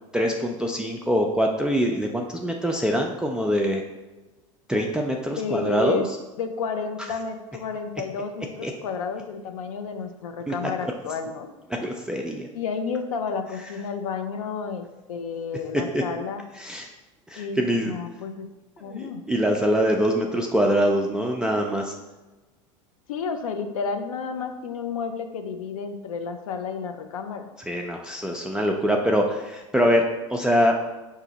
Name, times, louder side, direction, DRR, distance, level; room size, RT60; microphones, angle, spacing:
voice 1, 0.1-3.8 4.7-6.0 8.6-8.7 10.5-10.6 10.8-10.9 11.8-12.5 15.9-16.0 16.6-16.9 17.3-17.9 18.9-21.9 27.7-30.0 30.3-30.8, equal, 5° right, 1 dB, 0.4 m, -24 dB
voice 2, 5.3-6.1 6.4-11.5 12.5-16.4 17.4-18.5 18.8-19.2 23.1-27.5, left 5 dB, 85° left, 7 dB, 0.6 m, -31 dB
4.9 x 2.8 x 3.9 m, 1.1 s
hypercardioid pair, 95°, 17 cm